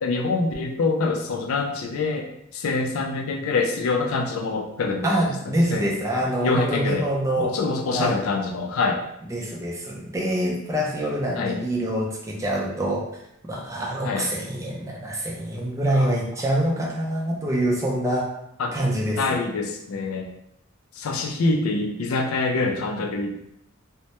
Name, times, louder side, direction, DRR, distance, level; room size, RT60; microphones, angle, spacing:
voice 1, 0.0-5.1 5.7-6.0 6.4-7.0 7.4-9.0 11.4-11.6 14.0-14.3 15.9-16.1 18.6-18.8 19.2-20.3 20.9-23.4, left 3 dB, 80° left, 4 dB, 0.4 m, -25 dB
voice 2, 5.0-7.6 7.9-8.2 9.3-13.0 13.5-18.3 18.7-19.4, right 1 dB, 15° right, -3 dB, 0.4 m, -25 dB
2.1 x 2.1 x 2.8 m, 0.77 s
head